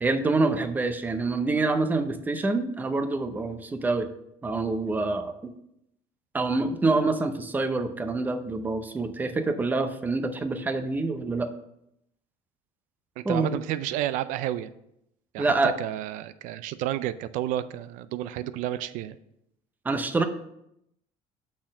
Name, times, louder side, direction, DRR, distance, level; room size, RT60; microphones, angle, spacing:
voice 1, 0.0-4.1 4.4-5.5 6.3-11.5 13.2-13.6 15.4-15.7 19.8-20.2, right 3 dB, 15° right, 8 dB, 0.5 m, -26 dB
voice 2, 13.2-14.7 15.3-19.2, right 12 dB, 75° right, 14 dB, 0.4 m, -31 dB
6.0 x 4.3 x 6.2 m, 0.79 s
cardioid pair, 140°, 13 cm